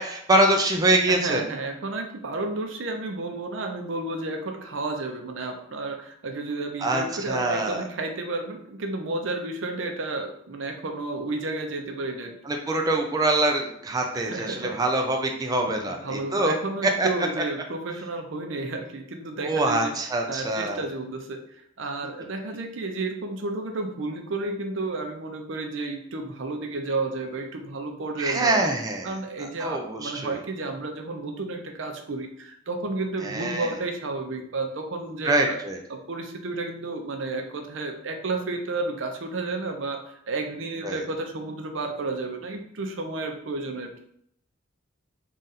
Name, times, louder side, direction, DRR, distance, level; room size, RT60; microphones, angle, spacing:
voice 1, 0.0-1.4 6.8-7.8 12.5-16.5 17.0-17.1 19.4-20.8 28.2-29.1 29.6-30.3 33.2-33.7 35.2-35.8 40.8-41.0, right 2 dB, 20° right, 2 dB, 0.4 m, -24 dB
voice 2, 1.1-12.3 14.1-14.8 16.0-19.9 20.3-21.4 21.8-28.7 29.0-35.6 35.9-44.0, right 2 dB, 70° right, 4 dB, 0.6 m, -32 dB
3.8 x 2.4 x 4.1 m, 0.69 s
head